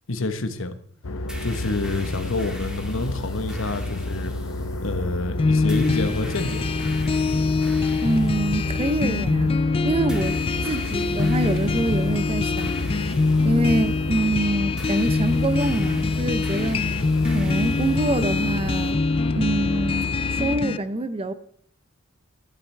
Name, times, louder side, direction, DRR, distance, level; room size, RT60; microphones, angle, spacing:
voice 1, 0.1-0.7 1.4-4.3 4.8-6.7, left 2 dB, 65° left, 1.0 m, -28 dB
sound 1, 1.0-20.6, left 1 dB, 90° left, 0.8 m, -31 dB
sound 2, 1.3-18.9, equal, 5° right, 1.9 m, -41 dB
sound 3, 5.4-20.8, left 4 dB, 25° left, 0.3 m, -24 dB
voice 2, 8.0-10.4 10.6-12.7 13.4-16.8 17.3-19.0 19.4-21.3, right 1 dB, 30° right, 0.6 m, -25 dB
11.5 x 11.5 x 3.3 m
head